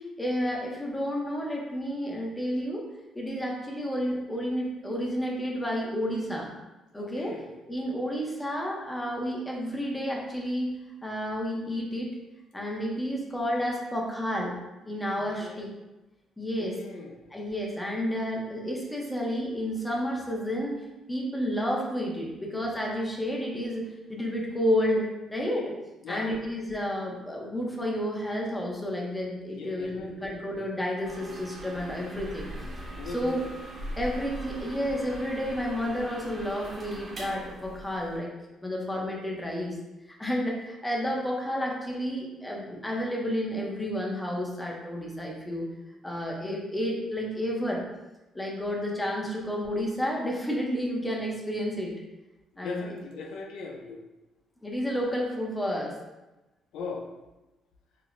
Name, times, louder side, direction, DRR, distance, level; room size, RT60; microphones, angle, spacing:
voice 1, 0.0-2.8 3.1-6.5 6.9-7.4 7.7-10.7 11.0-12.1 12.5-14.5 14.8-15.7 16.4-16.8 17.3-20.7 21.1-25.7 26.1-32.5 33.1-33.4 34.0-38.3 38.6-39.7 40.2-45.7 46.0-47.8 48.3-51.9 52.6-52.9 54.6-56.0, equal, 10° left, -2 dB, 0.5 m, -31 dB
voice 2, 7.0-7.5 15.2-15.7 16.6-17.3 26.0-26.4 29.5-30.3 33.0-33.4 52.6-54.0 56.7-57.1, left 4 dB, 85° left, 2 dB, 0.4 m, -39 dB
sound 1, 31.0-38.2, right 1 dB, 30° right, 0.7 m, -41 dB
4.7 x 2.0 x 2.4 m, 1.0 s
cardioid pair, 145°, 0 cm